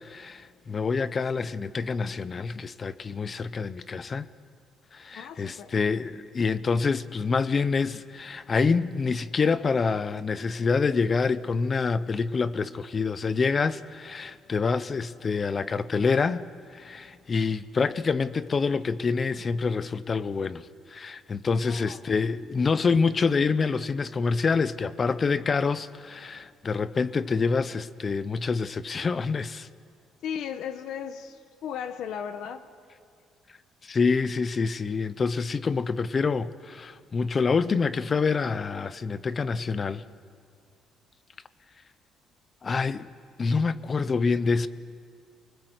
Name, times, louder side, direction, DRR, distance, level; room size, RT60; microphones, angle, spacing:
voice 1, 0.0-4.3 4.9-16.5 16.7-29.7 33.8-40.0 42.6-43.1 43.4-44.7, left 4 dB, 25° left, 0.5 m, -26 dB
voice 2, 5.1-5.7 21.6-22.0 30.2-32.6, left 8 dB, 60° left, 1.0 m, -36 dB
28.0 x 20.0 x 8.0 m
cardioid pair, 180°, 0 cm